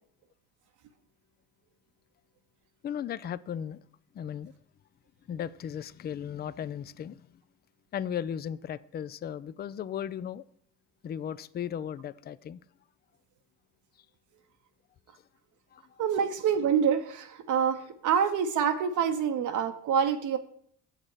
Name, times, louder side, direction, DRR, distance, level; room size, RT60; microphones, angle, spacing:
voice 1, 2.8-3.8 4.1-4.5 5.3-7.2 7.9-10.4 11.0-12.6 15.7-16.0, left 9 dB, 25° left, 0.4 m, -36 dB
voice 2, 16.0-20.4, right 7 dB, 55° right, 0.8 m, -26 dB
7.4 x 6.5 x 4.7 m
hypercardioid pair, 60°, 37 cm